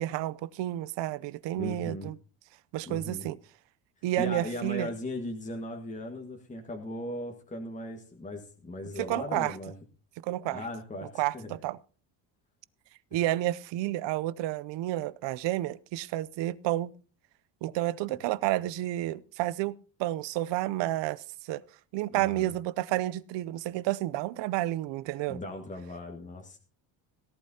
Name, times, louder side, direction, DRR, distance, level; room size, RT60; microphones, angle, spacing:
voice 1, 0.0-2.1 2.7-3.4 4.0-4.9 9.0-9.5 10.2-10.6 11.2-11.8 13.1-16.9 17.6-19.7 20.0-21.6 21.9-25.4, right 15 dB, 65° right, 0.7 m, -30 dB
voice 2, 1.5-2.1 2.9-3.3 4.2-9.7 10.5-11.6 13.1-13.2 22.1-22.5 25.3-26.6, left 1 dB, 15° left, 1.7 m, -38 dB
17.5 x 11.5 x 2.8 m
cardioid pair, 130°, 47 cm